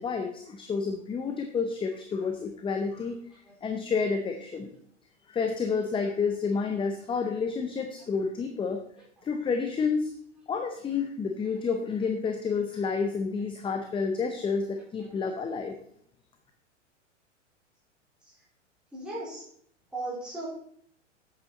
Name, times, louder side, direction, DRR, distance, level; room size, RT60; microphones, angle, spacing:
voice 1, 0.0-3.2 3.6-4.7 5.3-8.8 9.2-10.1 10.5-15.7, left 5 dB, 15° left, 5 dB, 0.7 m, -29 dB
voice 2, 18.9-19.4 19.9-20.5, right 2 dB, ahead, -8 dB, 4.2 m, -36 dB
8.3 x 8.2 x 4.1 m, 0.64 s
hypercardioid pair, 105°, 37 cm